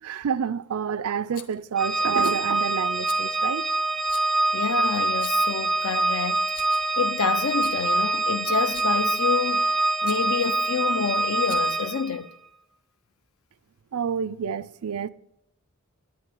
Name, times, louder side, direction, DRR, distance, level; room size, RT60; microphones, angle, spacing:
voice 1, 0.0-3.7 13.9-15.1, right 7 dB, 80° right, 0.5 m, -28 dB
Rattle, 1.3-1.6 2.2-2.4 3.1-3.2 4.1-4.3 5.1-5.5 6.3-7.0 7.5-7.8 8.6-9.0 10.0-10.3 11.3-11.9, left 8 dB, 40° left, 0.9 m, -43 dB
Organ, 1.8-12.2, right 2 dB, ahead, 0.5 m, -25 dB
voice 2, 4.5-6.5 7.0-9.7 10.0-12.3, left 6 dB, 70° left, 0.6 m, -28 dB
10.0 x 8.8 x 7.7 m
head